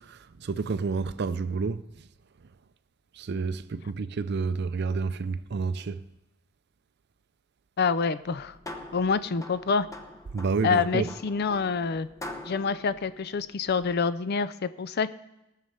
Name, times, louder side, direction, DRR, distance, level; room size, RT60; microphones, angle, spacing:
voice 1, 0.0-1.8 3.2-6.0 10.3-11.1, right 4 dB, 50° right, 0.5 m, -29 dB
voice 2, 7.8-8.6 8.9-9.9 10.6-12.1 12.5-15.1, left 5 dB, 50° left, 0.4 m, -27 dB
sound 1, 8.2-14.1, left 1 dB, 15° left, 0.8 m, -44 dB
18.5 x 6.6 x 5.6 m
head